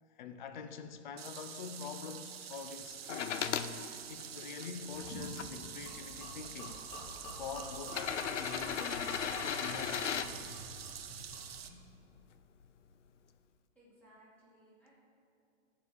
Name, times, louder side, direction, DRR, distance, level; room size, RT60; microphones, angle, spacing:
voice 1, 0.0-3.8 4.1-6.8 7.3-10.6, left 6 dB, 40° left, 0.5 m, -45 dB
sound 1, 1.2-11.7, right 9 dB, 55° right, 0.8 m, -47 dB
sound 2, 3.1-3.7 4.4-5.5 6.4-6.5 7.8-10.3 12.2-12.3, left 8 dB, 90° left, 0.7 m, -36 dB
Gurgling / Liquid, 4.9-11.7, equal, 20° left, 2.7 m, -48 dB
voice 2, 13.7-14.9, right 1 dB, 5° left, 1.7 m, -62 dB
13.5 x 4.8 x 7.1 m
hypercardioid pair, 175°, 35 cm